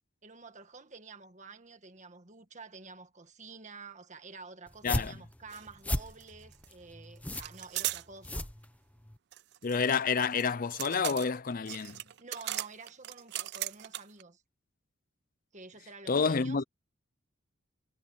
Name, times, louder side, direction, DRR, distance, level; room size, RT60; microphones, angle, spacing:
voice 1, 0.2-8.5 12.2-14.4 15.5-16.6, right 4 dB, 35° right, 1.7 m, -50 dB
sound 1, 4.7-9.2, left 1 dB, 5° left, 0.8 m, -36 dB
sound 2, 5.5-5.7 5.9-6.7 7.3-8.0 9.3-14.2, right 16 dB, 55° right, 0.4 m, -38 dB
voice 2, 9.6-12.0 16.1-16.6, left 5 dB, 40° left, 0.5 m, -29 dB
head